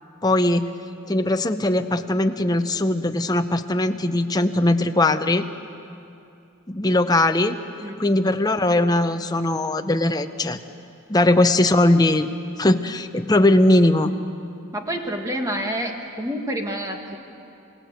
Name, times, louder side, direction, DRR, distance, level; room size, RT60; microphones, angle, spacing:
voice 1, 0.2-0.7 1.1-5.4 6.7-7.6 8.0-10.6 11.1-12.3 12.6-14.1, left 1 dB, 20° left, 7 dB, 0.7 m, -20 dB
voice 2, 14.7-17.2, right 1 dB, 15° right, 3 dB, 1.8 m, -28 dB
27.5 x 17.0 x 8.1 m, 2.7 s
head